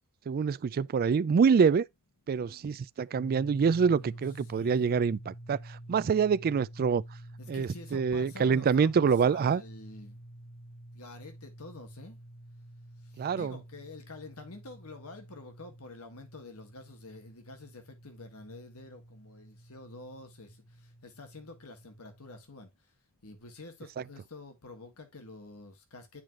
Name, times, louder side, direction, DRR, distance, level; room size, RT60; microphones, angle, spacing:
voice 1, 0.3-1.9 2.3-7.0 7.5-9.6 13.2-13.5, right 6 dB, 45° right, 0.3 m, -26 dB
voice 2, 2.3-2.8 3.7-5.1 7.4-10.2 10.9-12.2 13.0-26.2, left 2 dB, 75° left, 1.5 m, -48 dB
sound 1, 3.1-22.4, right 1 dB, 60° left, 3.5 m, -49 dB
10.5 x 4.7 x 2.3 m
head